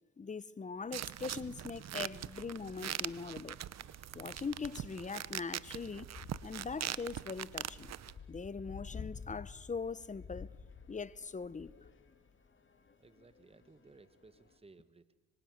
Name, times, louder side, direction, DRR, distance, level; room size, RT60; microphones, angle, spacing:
voice 1, 0.2-3.6 4.1-6.1 6.4-7.9 8.3-10.5 10.9-11.7, left 5 dB, 25° left, 0.9 m, -41 dB
sound 1, 0.8-14.6, left 5 dB, 40° left, 3.3 m, -53 dB
sound 2, 0.9-8.1, right 11 dB, 60° right, 1.0 m, -42 dB
voice 2, 13.0-15.1, right 3 dB, 20° right, 1.5 m, -60 dB
25.0 x 24.5 x 9.5 m
cardioid pair, 90°, 30 cm